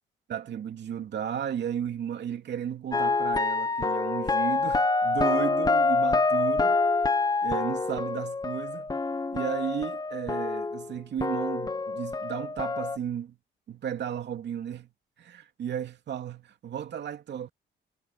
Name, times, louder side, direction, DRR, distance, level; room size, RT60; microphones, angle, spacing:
voice 1, 0.3-6.8 7.4-8.9 9.3-13.4 13.7-14.9 15.2-17.5, right 9 dB, 60° right, 2.5 m, -34 dB
sound 1, 2.9-10.9 11.2-13.0, left 3 dB, 20° left, 1.2 m, -26 dB
cardioid pair, 90°, 20 cm